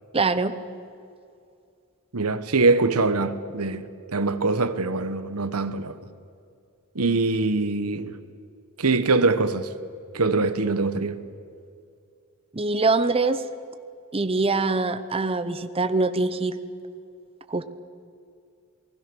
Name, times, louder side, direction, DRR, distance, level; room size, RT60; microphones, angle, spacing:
voice 1, 0.1-0.5 12.5-13.4 14.1-16.6 17.5-17.6, right 3 dB, 25° right, 0.8 m, -23 dB
voice 2, 2.1-6.0 6.9-8.2 8.8-9.7 10.1-11.2, right 3 dB, 90° right, 1.2 m, -23 dB
28.0 x 20.0 x 6.3 m
head